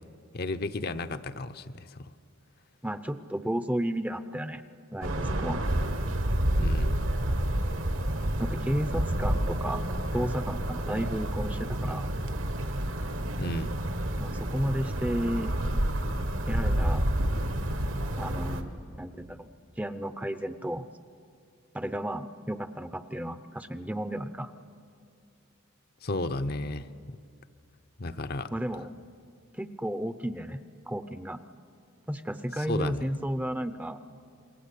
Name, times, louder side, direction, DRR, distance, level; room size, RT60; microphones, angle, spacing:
voice 1, 0.3-2.1 6.6-7.0 13.4-13.8 26.0-27.2 28.0-28.5 32.6-33.0, left 2 dB, 45° left, 10 dB, 0.7 m, -33 dB
voice 2, 2.8-4.6 4.9-5.6 8.4-9.8 10.1-12.1 14.2-15.6 16.5-17.1 18.2-18.7 19.0-19.5 19.8-20.9 21.7-24.5 28.5-28.9 29.6-31.4 32.1-34.0, equal, 5° right, 11 dB, 0.6 m, -33 dB
sound 1, 5.0-18.6, right 1 dB, 70° right, 1.6 m, -29 dB
28.0 x 22.0 x 8.4 m, 2.3 s
head